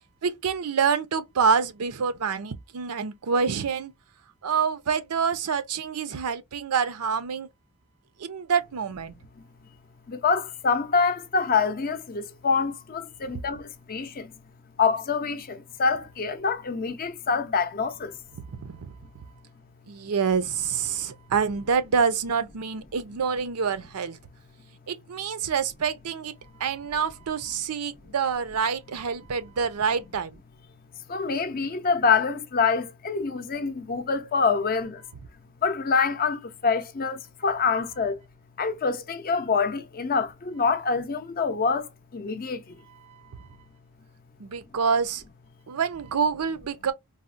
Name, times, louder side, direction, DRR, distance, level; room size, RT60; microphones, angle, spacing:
voice 1, 0.2-3.9 4.4-7.5 8.2-9.1 18.6-18.9 19.9-24.2 24.9-26.3 26.6-30.4 43.0-43.5 44.4-45.2 45.7-46.9, right 6 dB, 85° right, 0.5 m, -27 dB
voice 2, 10.1-14.4 14.8-18.2 31.1-35.0 35.6-38.2 38.6-42.8, left 5 dB, 40° left, 0.5 m, -26 dB
4.0 x 2.0 x 2.5 m
head